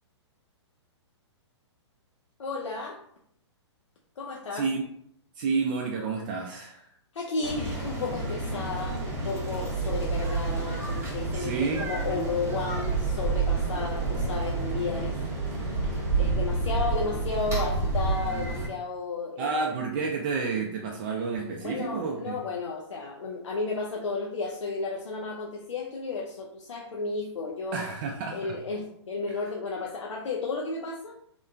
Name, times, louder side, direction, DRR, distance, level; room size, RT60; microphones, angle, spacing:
voice 1, 2.4-3.0 4.2-4.7 7.1-15.1 15.7-15.8 16.2-19.6 21.6-27.9 28.3-31.2, left 4 dB, 85° left, -1 dB, 0.4 m, -33 dB
voice 2, 4.5-5.0 5.3-6.9 11.3-11.9 19.4-22.4 27.7-28.6 29.3-29.4, right 4 dB, 40° right, 0 dB, 0.4 m, -30 dB
sound 1, 7.4-18.7, right 3 dB, 15° right, 0.8 m, -29 dB
2.9 x 2.1 x 2.4 m, 0.71 s
hypercardioid pair, 125°, 15 cm